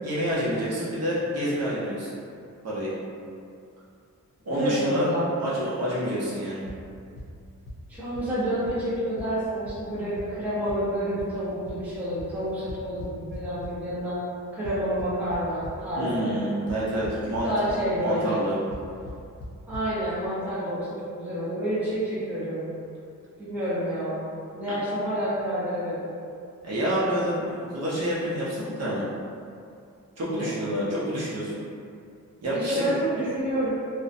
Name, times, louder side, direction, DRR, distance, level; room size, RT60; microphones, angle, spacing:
voice 1, 0.0-2.1 2.6-2.9 4.4-5.1 5.4-6.6 16.0-17.5 18.0-18.5 26.6-29.1 30.2-31.6 32.4-32.8, equal, 55° right, -9 dB, 0.7 m, -28 dB
voice 2, 4.5-5.3 7.9-14.2 14.5-16.3 17.4-18.4 19.7-22.7 23.4-24.2 24.5-26.1 30.2-30.6 32.5-33.7, equal, 5° right, -11 dB, 0.5 m, -29 dB
Cajon Bass Drum Percussion, 6.7-6.8 7.2-7.3 7.7-7.8 8.1-8.2 8.7-8.8 9.2-9.3 9.7-9.8 10.2-10.3 10.7-10.8 11.2-11.3 11.7-11.8 12.2-12.3 12.7-13.7 14.6-15.7 16.7-16.8 17.0-17.4 17.7-17.8 18.7-18.8 19.1-19.2 19.4-19.5 19.7-19.8, left 1 dB, 90° left, 0.6 m, -37 dB
2.5 x 2.1 x 2.5 m, 2.4 s
wide cardioid pair, 180°, 31 cm